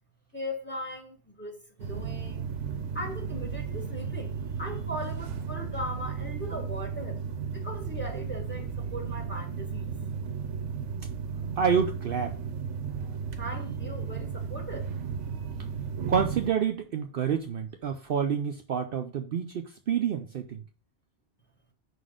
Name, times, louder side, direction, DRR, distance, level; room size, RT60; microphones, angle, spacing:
voice 1, 0.3-2.4 2.9-7.2 7.5-9.9 13.4-14.9, equal, 10° left, 1.2 m, -39 dB
sound 1, 1.8-16.5, right 6 dB, 85° right, 1.1 m, -34 dB
voice 2, 11.6-12.3 16.1-20.6, right 7 dB, 60° right, 0.7 m, -28 dB
5.0 x 4.0 x 4.9 m
omnidirectional pair, 1.2 m